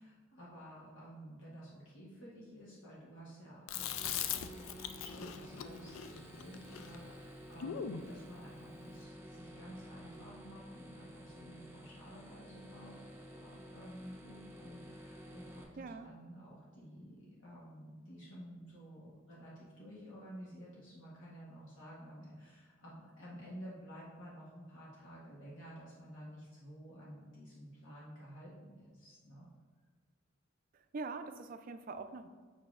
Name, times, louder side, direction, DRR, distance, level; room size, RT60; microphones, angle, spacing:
voice 1, 0.0-29.5, equal, 70° left, -7 dB, 1.2 m, -52 dB
Chewing mastication, 3.7-8.1, left 9 dB, 90° left, 0.4 m, -41 dB
sound 1, 3.7-15.6, equal, 10° right, 0.7 m, -52 dB
voice 2, 15.8-16.1 30.7-32.3, right 4 dB, 45° right, 8 dB, 0.3 m, -44 dB
7.0 x 5.5 x 2.4 m, 1.5 s
head